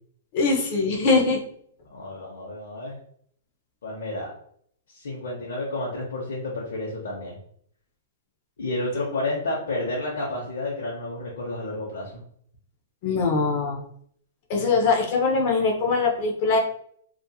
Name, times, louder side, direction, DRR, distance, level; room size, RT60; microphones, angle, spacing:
voice 1, 0.3-1.4 13.0-13.8 14.5-16.6, left 4 dB, 30° left, 1 dB, 0.4 m, -22 dB
voice 2, 1.9-3.0 3.8-4.3 4.9-7.4 8.6-12.2, left 2 dB, 80° left, -4 dB, 0.7 m, -30 dB
2.7 x 2.3 x 2.3 m, 0.64 s
hypercardioid pair, 175°, 0 cm